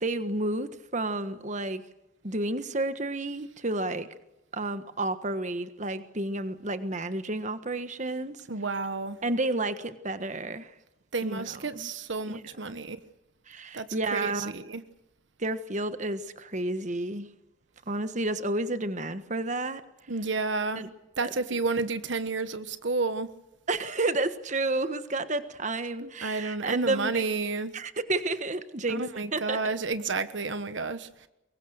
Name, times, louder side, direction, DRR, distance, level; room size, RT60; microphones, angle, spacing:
voice 1, 0.0-1.8 2.2-4.1 4.5-8.5 9.2-10.7 11.2-11.9 12.3-12.8 13.5-14.5 15.4-17.3 17.9-19.8 20.7-20.9 21.2-21.3 23.7-27.4 27.7-29.7, right 2 dB, 40° right, 1.4 m, -31 dB
voice 2, 8.5-9.2 11.1-13.0 13.7-13.9 14.1-14.2 14.5-14.8 20.1-20.8 21.2-23.3 26.0-27.7 28.9-31.3, right 3 dB, 65° right, 1.3 m, -31 dB
24.5 x 22.0 x 6.6 m
head